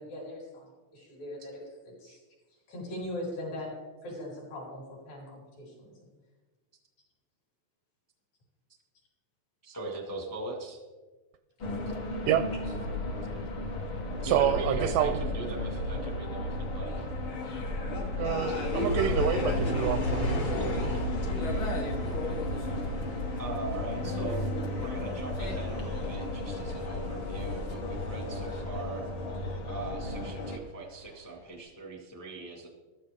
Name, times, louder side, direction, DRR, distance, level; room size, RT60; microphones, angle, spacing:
voice 1, 0.0-1.6 2.0-2.2 2.7-6.1, left 1 dB, 70° left, -4 dB, 6.4 m, -40 dB
voice 2, 9.6-10.8 14.2-17.1 18.5-18.7 20.1-20.5 23.4-29.1 29.7-32.7, right 2 dB, 15° left, 0 dB, 0.6 m, -40 dB
sound 1, 11.6-30.6, left 1 dB, 55° left, 1.4 m, -33 dB
voice 3, 14.2-15.2 18.2-20.9, right 10 dB, 80° right, 10 dB, 2.0 m, -28 dB
sound 2, 18.5-29.7 29.9-31.0 31.5-31.6, left 2 dB, 90° left, 6.0 m, -37 dB
14.0 x 13.0 x 3.6 m, 1.3 s
omnidirectional pair, 4.1 m